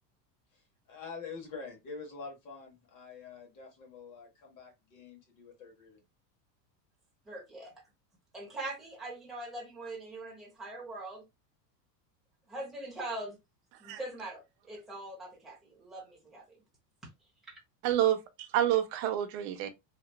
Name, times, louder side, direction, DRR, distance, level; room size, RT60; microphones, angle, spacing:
voice 1, 0.9-6.0, left 4 dB, 40° left, 1.2 m, -46 dB
voice 2, 7.3-7.7 8.3-11.3 12.5-13.4 13.8-16.6 17.5-17.6, right 2 dB, ahead, 0.6 m, -42 dB
voice 3, 17.8-19.7, right 11 dB, 45° right, 0.5 m, -28 dB
2.9 x 2.3 x 2.2 m
supercardioid pair, 150°, 50 cm